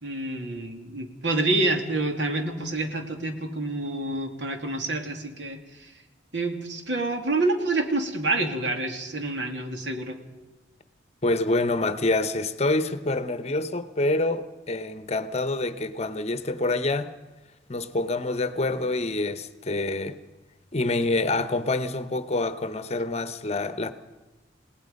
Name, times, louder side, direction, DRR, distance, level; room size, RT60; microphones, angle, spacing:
voice 1, 0.0-5.9 6.3-10.2, right 2 dB, 80° right, 2.5 m, -28 dB
voice 2, 11.2-17.1 17.7-20.2 20.7-23.9, left 2 dB, 35° left, 0.9 m, -26 dB
29.0 x 18.0 x 5.3 m
head